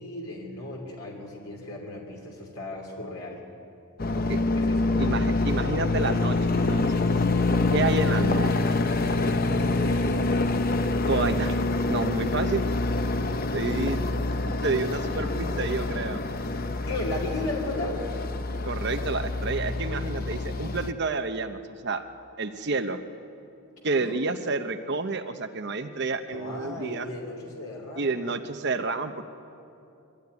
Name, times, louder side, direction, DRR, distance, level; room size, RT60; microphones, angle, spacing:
voice 1, 0.0-3.4 4.1-4.2 4.6-4.9 9.7-10.1 16.9-18.0 23.9-24.7 26.3-28.4, left 2 dB, 90° left, -1 dB, 3.0 m, -36 dB
sound 1, 4.0-20.9, left 2 dB, 40° left, 0.7 m, -26 dB
voice 2, 5.0-6.9 7.7-8.9 11.0-11.5 11.9-12.6 13.5-14.0 14.6-16.2 18.6-22.0 22.4-23.0 23.8-27.1 28.0-29.2, right 3 dB, 50° right, 8 dB, 0.8 m, -29 dB
22.5 x 14.0 x 9.6 m, 2.7 s
head